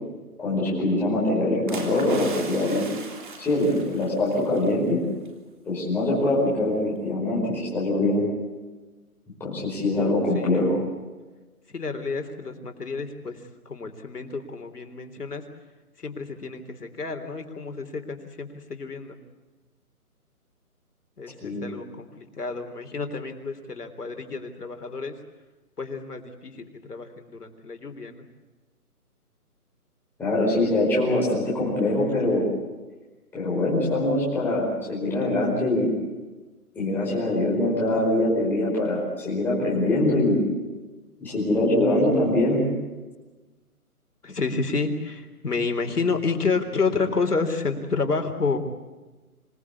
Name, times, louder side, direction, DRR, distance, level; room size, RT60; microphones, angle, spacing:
voice 1, 0.4-2.9 3.4-5.0 5.6-8.3 9.4-10.8 21.4-21.6 30.2-32.5 33.3-35.9 36.7-40.4 41.2-42.6, left 1 dB, 5° left, -7 dB, 5.1 m, -23 dB
sound 1, 1.7-4.7 5.0-5.3, right 4 dB, 30° right, 3.3 m, -38 dB
voice 2, 9.8-10.7 11.7-13.4 13.7-15.4 16.0-19.2 21.2-25.1 25.8-28.3 44.2-48.6, left 4 dB, 80° left, 6 dB, 3.6 m, -30 dB
27.0 x 18.5 x 8.5 m, 1.2 s
hypercardioid pair, 170°, 46 cm